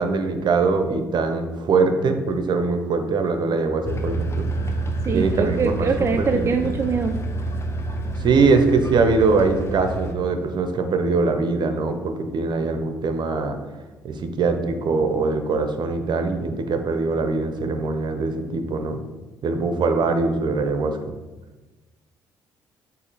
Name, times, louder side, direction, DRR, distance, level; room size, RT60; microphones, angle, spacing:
voice 1, 0.0-4.5 5.1-6.7 8.2-13.6 14.0-19.0 19.4-21.0, right 4 dB, 50° right, 7 dB, 0.8 m, -22 dB
sound 1, 3.8-10.1, right 1 dB, 30° left, 0.8 m, -28 dB
voice 2, 5.0-7.2, right 4 dB, 30° right, 5 dB, 0.5 m, -23 dB
8.1 x 2.8 x 4.1 m, 1.2 s
hypercardioid pair, 50°, 10 cm